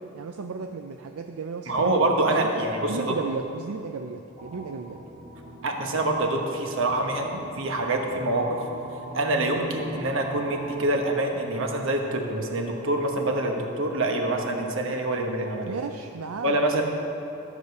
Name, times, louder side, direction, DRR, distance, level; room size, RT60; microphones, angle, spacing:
voice 1, 0.1-5.0 15.6-16.8, right 4 dB, 85° right, 5 dB, 0.4 m, -35 dB
voice 2, 1.7-3.2 5.6-8.6 9.1-15.8 16.4-16.8, right 2 dB, 65° right, 2 dB, 1.2 m, -25 dB
sound 1, 4.4-10.9, right 1 dB, 30° right, 0.9 m, -42 dB
13.0 x 5.0 x 6.7 m, 2.9 s
head